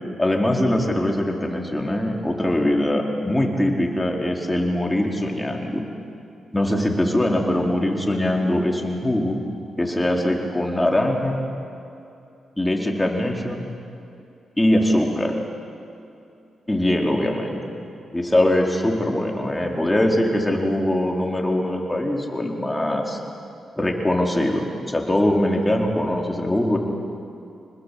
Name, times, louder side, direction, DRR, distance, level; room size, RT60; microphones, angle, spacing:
voice 1, 0.2-5.8 6.5-9.4 9.8-11.4 12.6-13.7 14.6-15.4 16.7-17.6 18.1-23.2 23.8-26.8, left 1 dB, 15° left, 0 dB, 4.6 m, -22 dB
27.0 x 20.0 x 8.6 m, 2.6 s
supercardioid pair, 55°, 0 cm